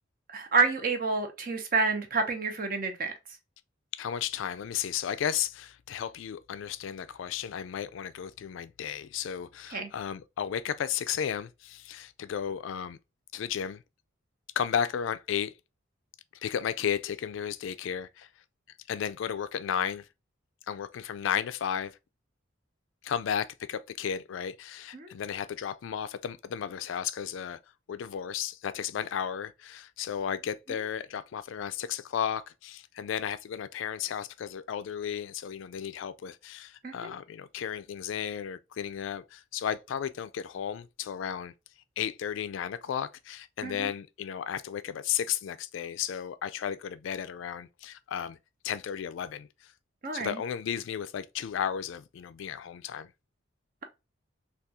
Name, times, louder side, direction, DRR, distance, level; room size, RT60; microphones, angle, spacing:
voice 1, 0.3-3.1 9.7-9.9 24.9-25.1 36.8-37.1 43.6-43.9 50.0-50.4, right 4 dB, 45° right, 0.7 m, -28 dB
voice 2, 3.9-13.0 13.3-13.8 14.6-15.5 16.4-18.3 18.9-20.1 20.7-21.9 23.0-27.6 27.9-41.5 42.0-48.4 48.6-49.5 50.1-53.1, left 8 dB, 75° left, 0.3 m, -34 dB
3.5 x 2.3 x 2.7 m
head